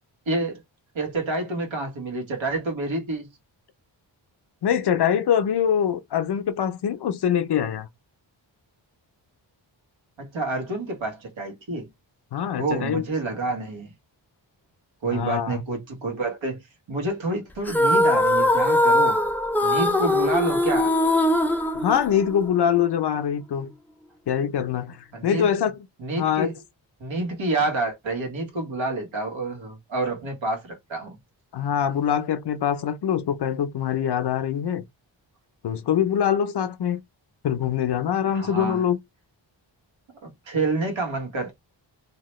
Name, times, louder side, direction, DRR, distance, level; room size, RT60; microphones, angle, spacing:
voice 1, 0.3-0.6 0.9-3.3 10.2-11.9 12.6-13.9 15.0-16.6 16.9-19.2 19.6-21.0 25.1-25.5 26.0-26.5 27.0-31.2 38.3-38.8 40.5-41.5, right 2 dB, 85° right, 1.3 m, -28 dB
voice 2, 4.6-7.9 12.3-13.0 15.1-15.6 21.7-23.7 24.3-25.7 26.2-26.5 31.5-34.8 35.6-37.0 37.4-39.0, left 9 dB, 60° left, 0.6 m, -24 dB
sound 1, 17.7-22.5, left 1 dB, 5° left, 0.3 m, -21 dB
2.9 x 2.1 x 3.0 m
wide cardioid pair, 90°, 45 cm